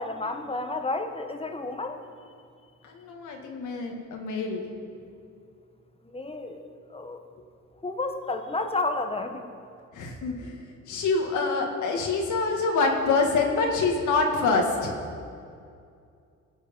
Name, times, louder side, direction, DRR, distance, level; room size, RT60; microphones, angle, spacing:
voice 1, 0.0-2.0 6.0-7.2 7.8-9.4, left 2 dB, 20° left, 6 dB, 1.2 m, -31 dB
voice 2, 2.8-4.6 9.9-14.9, left 3 dB, 80° left, 2 dB, 1.9 m, -26 dB
16.5 x 8.2 x 5.3 m, 2.4 s
cardioid pair, 90°, 30 cm